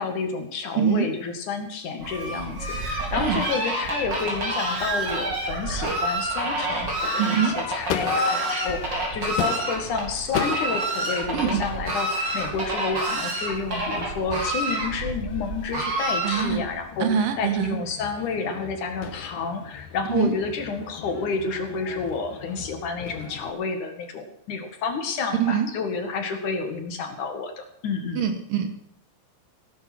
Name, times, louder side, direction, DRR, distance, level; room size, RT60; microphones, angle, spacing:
voice 1, 0.0-17.1 17.4-28.3, left 4 dB, 65° left, 5 dB, 3.3 m, -30 dB
voice 2, 0.8-1.1 3.2-3.4 7.2-7.6 11.3-11.6 16.2-16.6 17.0-17.8 20.1-20.3 25.4-25.7 28.2-28.7, right 8 dB, 80° right, 6 dB, 3.5 m, -24 dB
Fowl, 2.0-16.8, right 1 dB, 30° right, 4.2 m, -28 dB
Crowd / Fireworks, 4.5-23.5, left 7 dB, 85° left, 2.8 m, -37 dB
17.5 x 10.5 x 6.1 m, 0.71 s
omnidirectional pair, 3.9 m